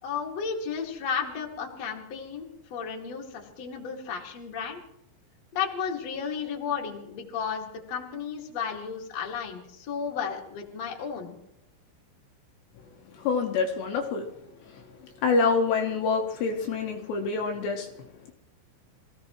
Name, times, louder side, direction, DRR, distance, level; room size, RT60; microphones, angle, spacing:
voice 1, 0.0-4.8 5.5-11.3, left 6 dB, 45° left, 0 dB, 2.7 m, -33 dB
voice 2, 13.2-14.3 15.2-17.9, left 4 dB, 70° left, 1 dB, 3.2 m, -26 dB
25.5 x 16.5 x 3.1 m, 0.83 s
omnidirectional pair, 5.4 m